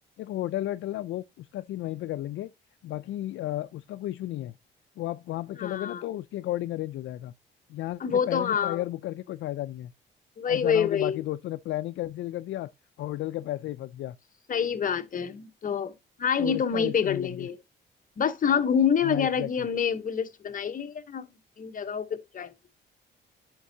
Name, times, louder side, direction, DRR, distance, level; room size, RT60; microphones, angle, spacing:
voice 1, 0.2-2.5 2.8-4.5 5.0-7.3 7.7-9.9 10.5-12.7 13.0-14.2 16.4-17.5 19.0-19.5, left 14 dB, 75° left, 0.4 m, -33 dB
voice 2, 5.6-6.0 8.0-8.8 10.4-11.2 14.5-15.9 16.2-17.6 18.2-21.3 21.6-22.5, left 7 dB, 45° left, 1.0 m, -27 dB
10.0 x 5.3 x 2.7 m
cardioid pair, 90°, 20 cm